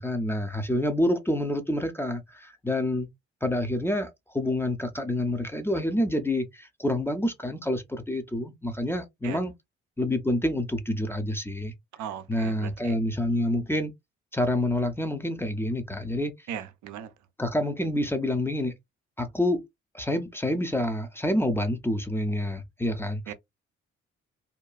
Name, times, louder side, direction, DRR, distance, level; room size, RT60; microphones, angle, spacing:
voice 1, 0.0-3.1 3.4-9.5 10.0-11.7 12.3-13.9 14.3-16.3 17.4-18.7 19.2-19.6 19.9-23.3, left 1 dB, 5° left, 0.6 m, -27 dB
voice 2, 11.9-12.9 16.5-17.1 23.3-23.4, right 9 dB, 60° right, 0.6 m, -38 dB
2.8 x 2.3 x 2.3 m
figure-of-eight pair, 40°, 33 cm